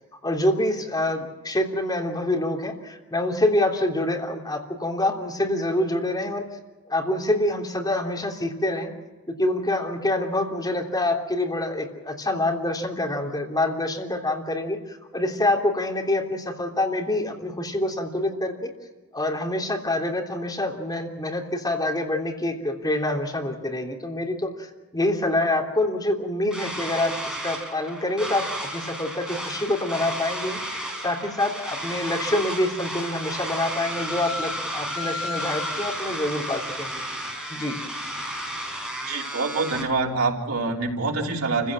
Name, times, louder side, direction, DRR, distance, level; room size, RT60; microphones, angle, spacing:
voice 1, 0.2-6.4 6.9-8.9 9.3-18.7 19.1-37.0 37.5-37.8, left 1 dB, 20° left, 1 dB, 3.3 m, -26 dB
sound 1, 26.5-39.8, equal, 5° right, 5.2 m, -32 dB
voice 2, 39.0-41.7, right 3 dB, 80° right, 0 dB, 3.6 m, -25 dB
29.0 x 16.0 x 7.6 m, 1.2 s
head